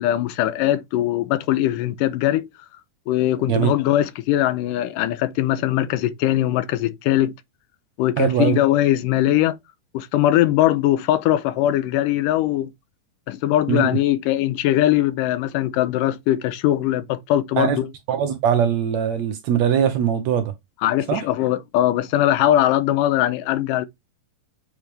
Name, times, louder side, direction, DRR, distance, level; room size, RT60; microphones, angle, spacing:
voice 1, 0.0-2.5 3.1-7.3 8.0-9.6 9.9-12.7 13.3-17.9 20.8-23.9, left 13 dB, 90° left, 2.3 m, -21 dB
voice 2, 8.2-8.6 13.7-14.0 17.6-17.8 18.1-20.5 21.1-21.2, right 8 dB, 70° right, 1.8 m, -21 dB
7.4 x 4.7 x 3.2 m
omnidirectional pair, 3.8 m